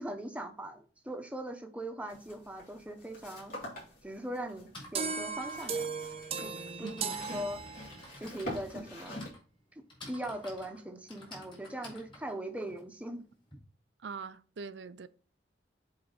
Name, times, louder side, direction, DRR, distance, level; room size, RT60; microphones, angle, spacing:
voice 1, 0.0-3.5 4.0-5.9 6.4-6.5 6.8-7.6 8.2-9.1 9.7-13.2, right 1 dB, 10° right, 0.9 m, -40 dB
sound 1, 2.1-9.3, left 1 dB, 50° left, 3.2 m, -46 dB
Typing, 4.7-13.6, left 1 dB, 30° left, 3.9 m, -53 dB
sound 2, 5.0-8.2, right 5 dB, 35° right, 0.7 m, -37 dB
voice 2, 6.8-7.2 14.0-15.1, right 5 dB, 80° right, 0.5 m, -43 dB
7.7 x 3.9 x 4.0 m
head